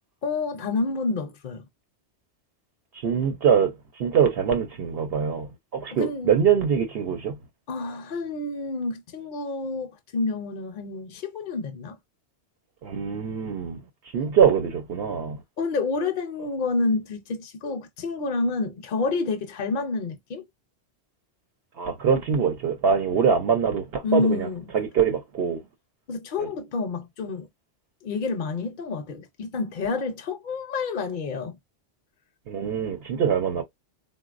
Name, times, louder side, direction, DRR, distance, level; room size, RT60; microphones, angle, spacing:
voice 1, 0.2-1.6 5.9-6.3 7.7-12.0 15.6-20.4 24.0-24.7 26.1-27.5 28.0-31.6, left 3 dB, 55° left, 0.7 m, -28 dB
voice 2, 3.0-7.4 12.8-13.8 14.1-15.4 21.8-24.5 24.7-25.6 26.4-26.5 32.5-33.6, right 7 dB, 65° right, 0.8 m, -23 dB
3.8 x 2.3 x 2.4 m
omnidirectional pair, 1.1 m